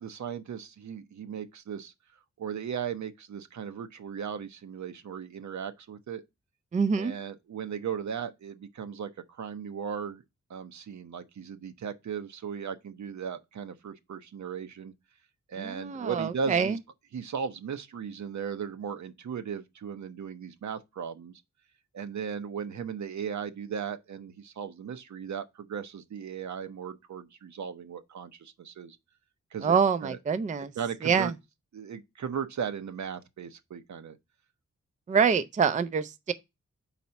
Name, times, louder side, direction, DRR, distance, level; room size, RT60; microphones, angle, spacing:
voice 1, 0.0-1.9 2.4-6.2 7.0-10.2 10.5-14.9 15.5-16.8 17.1-21.3 21.9-29.0 29.5-30.2 30.8-31.3 31.7-34.2, right 7 dB, 75° right, 0.7 m, -37 dB
voice 2, 6.7-7.1 15.6-16.8 29.6-30.7 31.0-31.3 35.1-36.3, right 6 dB, 25° right, 0.4 m, -25 dB
4.2 x 4.1 x 5.7 m
wide cardioid pair, 145°, 29 cm